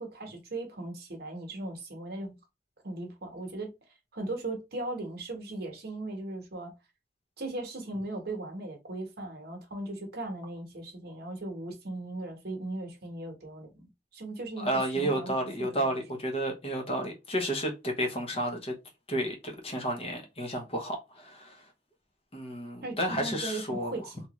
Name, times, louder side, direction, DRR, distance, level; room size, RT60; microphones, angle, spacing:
voice 1, 0.0-2.4 2.8-3.7 4.1-6.7 7.4-15.9 22.8-24.2, right 2 dB, 60° right, 1.0 m, -38 dB
voice 2, 14.6-18.7 19.1-21.6 22.3-23.9, right 1 dB, 35° left, 0.9 m, -31 dB
2.9 x 2.4 x 2.9 m
head